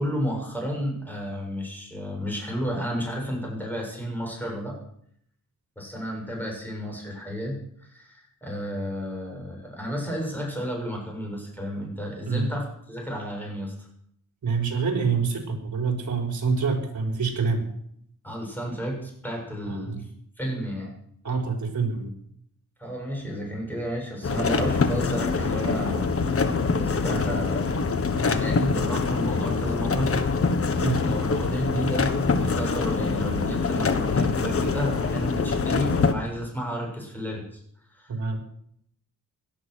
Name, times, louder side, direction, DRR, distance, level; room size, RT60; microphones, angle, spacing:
voice 1, 0.0-4.8 5.8-13.9 18.2-20.1 20.4-21.0 22.8-26.1 26.7-30.1 30.8-32.1 32.4-37.6 37.9-38.2, equal, 5° left, 0 dB, 7.2 m, -32 dB
voice 2, 14.4-17.7 19.7-20.0 21.2-22.1 30.8-31.0 38.1-38.4, right 5 dB, 55° right, 3 dB, 4.7 m, -26 dB
sound 1, 24.2-36.1, left 4 dB, 40° left, 1.5 m, -24 dB
17.5 x 12.0 x 6.4 m, 0.69 s
wide cardioid pair, 115°, 34 cm